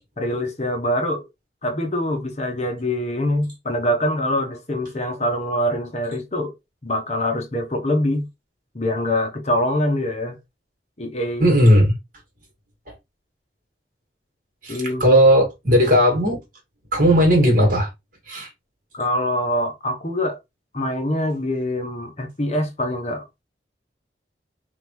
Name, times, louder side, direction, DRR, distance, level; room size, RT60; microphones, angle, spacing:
voice 1, 0.2-1.2 1.6-6.5 6.8-8.3 8.7-10.4 11.0-11.5 14.7-15.1 18.9-20.4 20.7-23.4, left 1 dB, 40° left, 1.0 m, -24 dB
voice 2, 11.4-11.9 14.6-16.4 16.9-17.9 18.3-18.5, equal, 50° right, 2.3 m, -16 dB
3.9 x 3.6 x 3.2 m
head